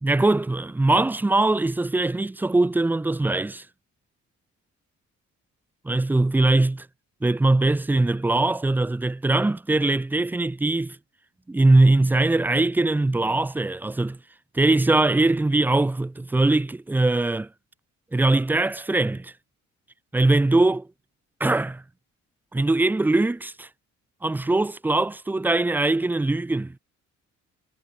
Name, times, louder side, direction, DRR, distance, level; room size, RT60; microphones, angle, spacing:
voice 1, 0.0-3.6 5.8-6.9 7.2-11.0 11.5-14.2 14.5-17.5 18.1-19.3 20.1-20.9 21.4-21.8 22.5-23.7 24.2-26.8, right 2 dB, 5° right, 0.3 m, -21 dB
cardioid pair, 90°, 30 cm